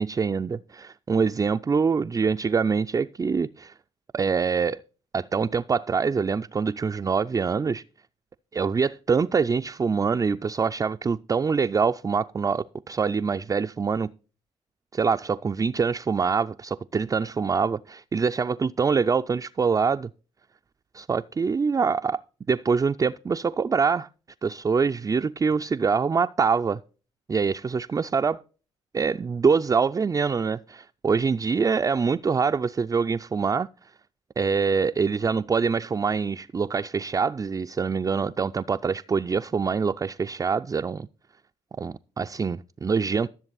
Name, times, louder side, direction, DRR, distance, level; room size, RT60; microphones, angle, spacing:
voice 1, 0.0-3.7 4.1-4.8 5.1-7.8 8.5-14.1 14.9-20.1 20.9-22.2 22.5-24.1 24.4-26.8 27.3-28.4 28.9-33.7 34.4-41.1 41.8-43.3, right 5 dB, 25° right, 0.4 m, -25 dB
13.5 x 7.0 x 4.0 m
hypercardioid pair, 50°, 15 cm